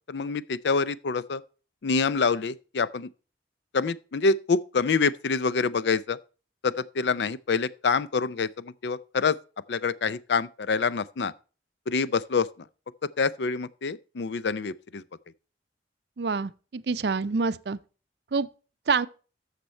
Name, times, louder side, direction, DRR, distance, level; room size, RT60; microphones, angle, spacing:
voice 1, 0.1-1.4 1.8-3.1 3.7-6.2 6.6-9.4 9.7-11.3 11.9-12.5 13.2-15.0, left 4 dB, 75° left, 0.5 m, -26 dB
voice 2, 16.2-17.8 18.3-18.5 18.9-19.1, right 4 dB, 65° right, 0.5 m, -26 dB
13.5 x 6.6 x 4.3 m
head